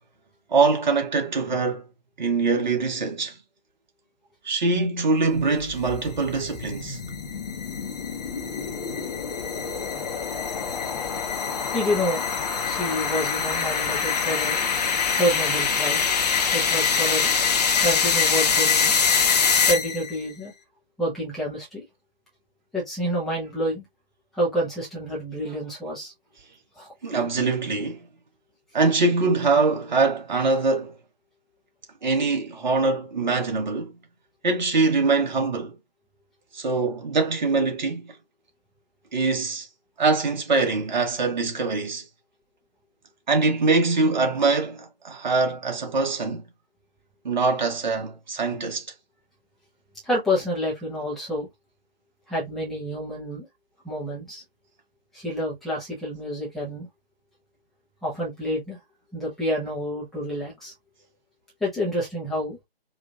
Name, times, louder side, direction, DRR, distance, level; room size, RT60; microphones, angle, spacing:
voice 1, 0.5-1.9 2.2-3.4 4.4-7.0 27.0-28.1 28.7-31.0 32.0-34.0 34.4-35.8 36.5-38.1 39.1-39.7 40.0-42.1 43.3-46.4 47.2-48.9, right 3 dB, 50° right, 1.3 m, -23 dB
sound 1, 5.4-20.2, left 6 dB, 45° left, 0.8 m, -24 dB
voice 2, 11.7-12.2 12.6-14.6 15.1-16.1 16.5-17.3 17.8-19.0 19.7-20.5 21.0-21.8 22.7-23.8 24.3-26.1 26.8-26.9 50.0-51.5 52.3-53.5 53.8-54.4 55.1-56.9 58.0-58.8 59.1-60.7 61.6-62.6, equal, ahead, 0.7 m, -28 dB
4.9 x 2.5 x 2.5 m
figure-of-eight pair, 145°, 30 cm